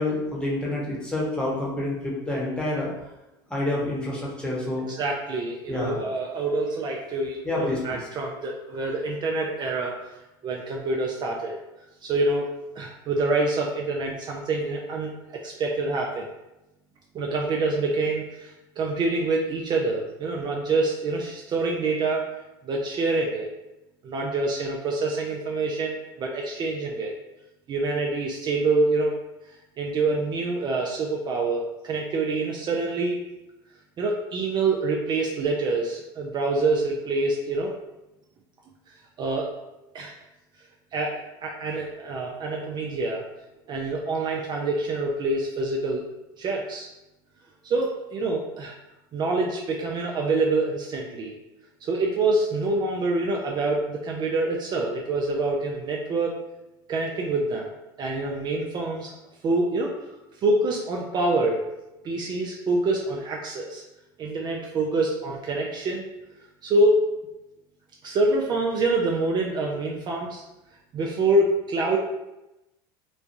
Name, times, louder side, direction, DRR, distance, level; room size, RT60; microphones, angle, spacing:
voice 1, 0.0-2.9 3.5-4.9 5.7-6.0 7.4-8.1, left 1 dB, 10° left, -5 dB, 1.0 m, -28 dB
voice 2, 5.0-10.0 10.4-11.6 12.0-12.5 12.8-15.1 15.4-16.3 17.1-22.2 22.6-23.5 24.0-27.1 27.7-29.1 29.8-33.2 34.0-37.7 39.2-39.5 39.9-40.1 40.9-43.2 43.7-46.0 46.4-46.9 47.6-48.8 49.1-51.3 51.8-56.3 56.9-57.7 58.0-59.1 59.4-59.9 60.4-61.6 62.0-63.8 64.2-66.0 66.6-67.0 68.0-70.4 70.9-72.0, right 2 dB, 35° right, -1 dB, 0.4 m, -26 dB
3.1 x 2.2 x 2.6 m, 0.96 s
hypercardioid pair, 85°, 12 cm